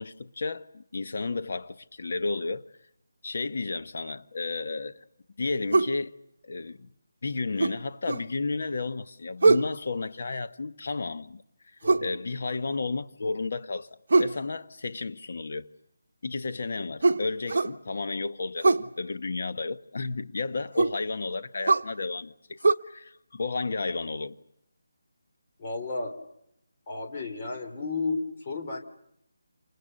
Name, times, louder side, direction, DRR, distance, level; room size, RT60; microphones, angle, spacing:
voice 1, 0.0-2.7 3.2-5.0 5.4-6.1 6.4-6.9 7.2-13.9 14.2-15.7 16.2-24.4, left 3 dB, 50° left, 1.4 m, -32 dB
sound 1, 5.7-6.0 7.6-8.3 9.4-9.7 11.8-12.1 14.1-14.4 17.0-17.8 18.6-18.9 20.8-21.0 21.7-21.9 22.6-22.7, right 3 dB, 55° right, 1.4 m, -22 dB
voice 2, 11.8-12.2 25.6-26.2 26.9-28.8, left 3 dB, 25° left, 3.5 m, -33 dB
29.0 x 28.5 x 6.7 m
figure-of-eight pair, 175°, 0 cm